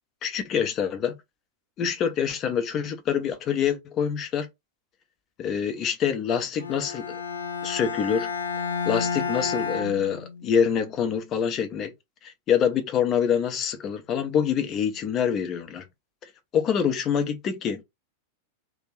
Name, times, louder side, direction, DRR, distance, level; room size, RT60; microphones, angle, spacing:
voice 1, 0.2-1.1 1.8-4.5 5.4-7.2 7.6-8.3 8.9-11.9 12.2-15.8 16.5-17.8, left 7 dB, 30° left, 0.6 m, -26 dB
Bowed string instrument, 6.6-10.7, left 5 dB, 75° left, 0.4 m, -31 dB
2.5 x 2.2 x 3.1 m
figure-of-eight pair, 90°, 0 cm